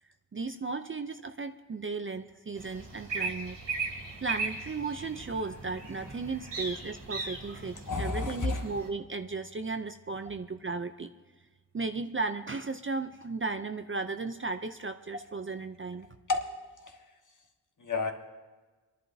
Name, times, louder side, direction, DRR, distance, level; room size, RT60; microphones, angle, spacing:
voice 1, 0.3-3.6 4.2-11.1 11.7-16.1, right 4 dB, 30° right, 8 dB, 0.5 m, -35 dB
sound 1, 2.6-8.9, right 4 dB, 85° right, 3.0 m, -38 dB
voice 2, 7.9-8.6 16.3-16.4 16.8-17.0 17.8-18.1, left 4 dB, 45° left, 4 dB, 1.4 m, -30 dB
28.0 x 11.0 x 2.7 m, 1.3 s
wide cardioid pair, 95°, 43 cm